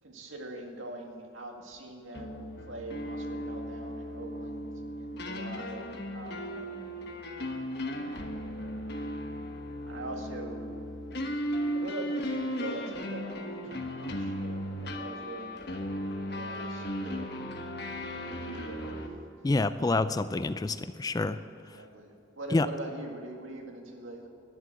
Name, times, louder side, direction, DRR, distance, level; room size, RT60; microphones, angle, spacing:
voice 1, 0.0-4.7 5.0-6.9 7.9-9.3 9.9-10.9 11.7-17.3 18.5-19.0 21.6-24.3, right 2 dB, 80° right, 2 dB, 1.9 m, -43 dB
sound 1, 2.1-19.1, equal, 55° left, 1.2 m, -36 dB
voice 2, 19.4-21.4 22.5-22.7, left 2 dB, 20° left, 13 dB, 0.3 m, -27 dB
12.0 x 10.5 x 7.7 m, 2.3 s
head